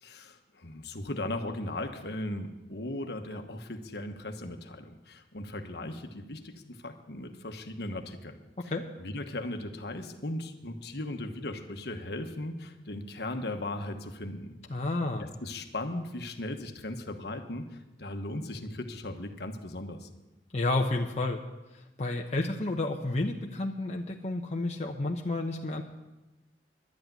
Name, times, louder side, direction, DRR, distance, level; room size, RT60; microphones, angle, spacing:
voice 1, 0.0-8.4 8.6-8.7 9.0-14.5 15.2-20.1, left 1 dB, 65° left, 5 dB, 1.3 m, -37 dB
voice 2, 8.6-8.9 14.7-15.3 20.5-21.4 21.7-25.8, left 2 dB, 40° left, 1 dB, 0.8 m, -31 dB
12.0 x 8.5 x 9.3 m, 1.0 s
head